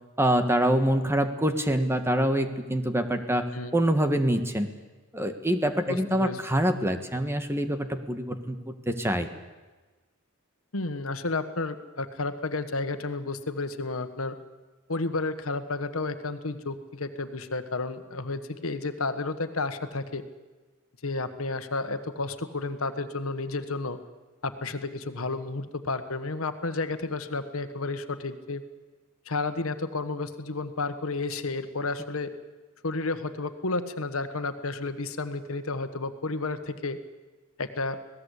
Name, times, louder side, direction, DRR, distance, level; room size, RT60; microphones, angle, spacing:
voice 1, 0.2-3.5 3.7-4.7 5.1-9.3, right 1 dB, 10° right, 7 dB, 1.6 m, -25 dB
voice 2, 5.9-6.4 10.7-14.3 14.9-20.2 21.0-24.0 24.4-28.6 29.3-32.3 32.8-37.0 37.6-38.0, left 3 dB, 75° left, 9 dB, 1.5 m, -31 dB
26.0 x 18.0 x 8.4 m, 1.3 s
head